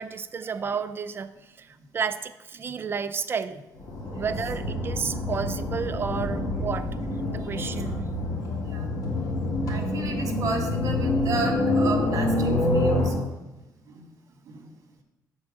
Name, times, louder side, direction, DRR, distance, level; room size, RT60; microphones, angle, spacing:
voice 1, 0.0-1.3 1.6-3.6 4.2-6.9 7.3-8.1, right 6 dB, 35° right, 10 dB, 0.4 m, -31 dB
sound 1, 3.8-13.1, left 2 dB, 55° left, 2.0 m, -27 dB
voice 2, 7.4-7.8 8.7-8.9 9.7-13.4 13.9-14.1 14.4-14.7, right 3 dB, 55° right, 3 dB, 1.6 m, -34 dB
7.0 x 4.4 x 6.4 m, 0.99 s
cardioid pair, 110°, 7 cm